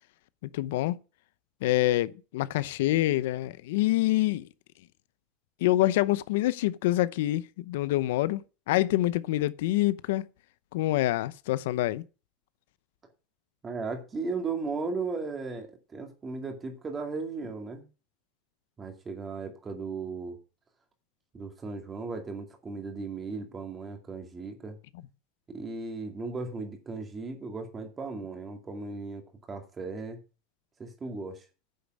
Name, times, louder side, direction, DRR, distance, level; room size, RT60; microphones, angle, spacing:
voice 1, 0.4-1.0 1.6-4.5 5.6-10.3 10.7-12.0, left 16 dB, 75° left, 0.7 m, -26 dB
voice 2, 13.6-17.8 18.8-20.4 21.3-24.8 25.5-30.2 30.8-31.5, right 4 dB, 15° right, 2.2 m, -36 dB
9.5 x 7.0 x 6.3 m
supercardioid pair, 165°, 0 cm